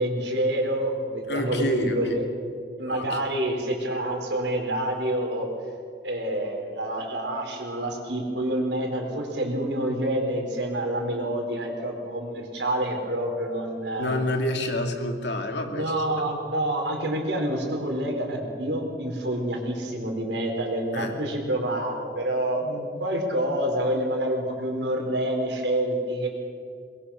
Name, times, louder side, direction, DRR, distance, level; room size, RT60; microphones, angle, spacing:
voice 1, 0.0-2.2 2.8-5.5 6.0-14.1 15.7-26.3, right 1 dB, 80° right, 1 dB, 4.5 m, -27 dB
voice 2, 1.3-2.2 2.9-3.2 14.0-16.2 20.9-21.1, left 1 dB, 75° left, 4 dB, 2.4 m, -28 dB
22.5 x 21.5 x 5.8 m, 2.2 s
head